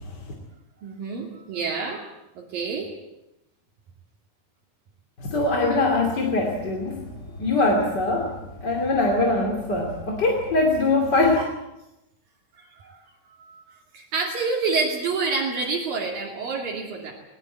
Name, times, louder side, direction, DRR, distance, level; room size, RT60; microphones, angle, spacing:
voice 1, 0.8-2.0 2.4-2.9 12.6-13.0 13.4-17.1, right 4 dB, 60° right, -1 dB, 4.2 m, -28 dB
voice 2, 5.2-7.0 7.4-8.3 8.6-11.4, left 2 dB, 30° left, 1 dB, 2.6 m, -22 dB
20.5 x 19.5 x 9.2 m, 0.91 s
omnidirectional pair, 4.6 m